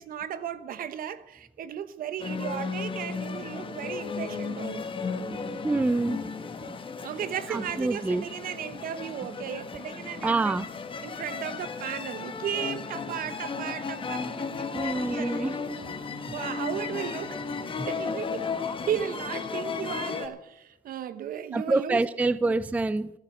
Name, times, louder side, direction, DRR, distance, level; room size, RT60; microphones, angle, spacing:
voice 1, 0.0-4.8 7.0-10.6 11.0-15.5 16.3-17.4 17.9-22.3, right 9 dB, 55° right, 1.1 m, -35 dB
sound 1, 2.2-20.3, left 5 dB, 30° left, 1.5 m, -35 dB
voice 2, 5.1-6.3 6.6-6.7 7.5-8.3 10.2-10.7 14.7-15.5 17.8-17.9 21.5-23.1, right 3 dB, 10° right, 0.4 m, -27 dB
14.5 x 9.5 x 7.8 m
cardioid pair, 110°, 17 cm